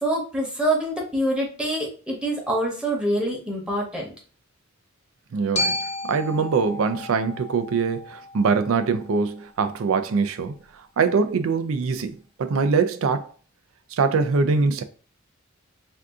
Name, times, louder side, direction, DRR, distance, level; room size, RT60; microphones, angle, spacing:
voice 1, 0.0-4.1, right 1 dB, 5° right, 0.8 m, -25 dB
voice 2, 5.3-5.8 6.0-10.6 11.0-13.3 13.9-14.8, right 4 dB, 80° right, 0.4 m, -23 dB
Glockenspiel, 5.6-9.7, left 1 dB, 30° left, 0.7 m, -32 dB
2.6 x 2.4 x 3.5 m
head